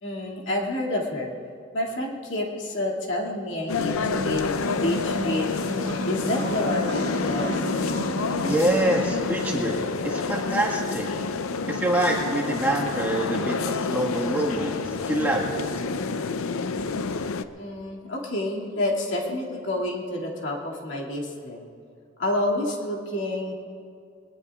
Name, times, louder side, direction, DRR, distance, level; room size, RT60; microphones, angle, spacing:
voice 1, 0.0-1.3 1.7-5.5 6.0-7.6 16.8-16.9 17.5-21.7 22.2-23.5, left 1 dB, 65° left, -3 dB, 2.4 m, -29 dB
sound 1, 3.7-17.4, left 4 dB, 90° left, 0.6 m, -28 dB
sound 2, 3.9-10.2, right 1 dB, 60° right, 1.4 m, -35 dB
voice 2, 8.4-11.1 11.7-15.6, right 1 dB, 10° right, -3 dB, 1.6 m, -26 dB
22.0 x 19.5 x 2.4 m, 2.3 s
head